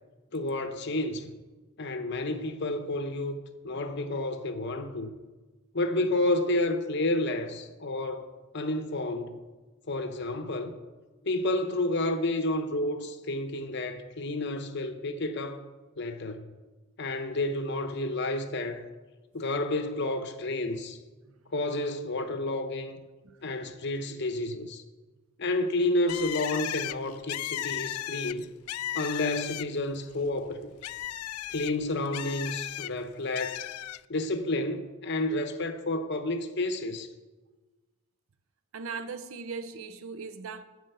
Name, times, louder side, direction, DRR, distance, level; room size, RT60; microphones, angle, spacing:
voice 1, 0.3-1.3 1.8-3.4 3.6-5.1 5.7-8.3 8.5-9.3 9.9-10.8 11.2-15.6 16.0-16.5 17.0-18.8 19.3-21.0 21.5-23.0 23.4-24.8 25.4-28.5 28.9-30.7 31.5-33.6 34.1-37.1, left 2 dB, 55° left, 0.8 m, -30 dB
Bird, 26.1-29.9 30.3-32.9 33.4-34.0, left 14 dB, 90° left, 0.3 m, -35 dB
voice 2, 38.7-40.6, right 5 dB, 70° right, 0.6 m, -39 dB
11.5 x 5.0 x 8.0 m
head